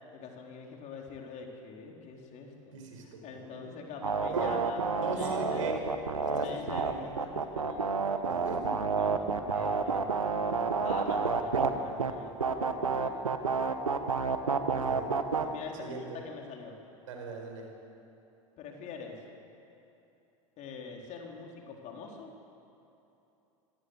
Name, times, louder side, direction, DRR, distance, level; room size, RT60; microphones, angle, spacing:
voice 1, 0.1-5.7 6.3-8.5 9.0-13.3 15.4-16.8 18.6-19.2 20.6-22.3, left 5 dB, 45° left, 1 dB, 4.1 m, -45 dB
voice 2, 2.7-3.6 4.3-4.6 4.9-5.7 6.2-7.1 8.3-8.7 14.6-15.1 15.4-15.5 15.8-16.2 17.1-17.7, right 4 dB, 70° right, 2 dB, 4.9 m, -39 dB
sound 1, 4.0-11.7 12.0-12.1 12.4-15.4, right 5 dB, 85° right, 1.3 m, -29 dB
25.0 x 17.5 x 8.1 m, 2.9 s
figure-of-eight pair, 85°, 17 cm